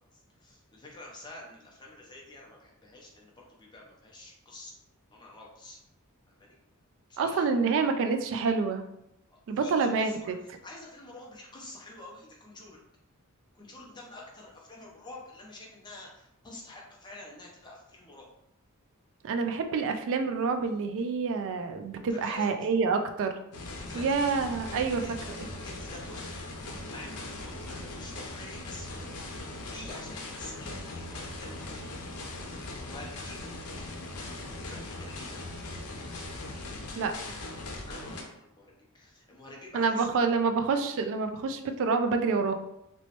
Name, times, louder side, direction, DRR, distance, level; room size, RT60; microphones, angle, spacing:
voice 1, 0.1-4.7 5.1-5.8 6.3-6.6 7.1-7.5 9.3-10.3 10.6-12.8 13.5-18.3 22.1-22.5 23.9-24.1 25.0-26.4 26.9-31.9 32.8-35.3 37.9-38.7 38.9-40.1, left 2 dB, 20° left, -2 dB, 0.7 m, -48 dB
voice 2, 7.2-8.8 9.5-10.4 19.2-23.3 23.9-25.0 25.4-25.5 37.0-37.1 39.7-42.5, right 4 dB, 60° right, 7 dB, 0.3 m, -27 dB
sound 1, 23.5-38.2, left 2 dB, 85° left, 0.6 m, -40 dB
3.0 x 3.0 x 2.9 m, 0.81 s
head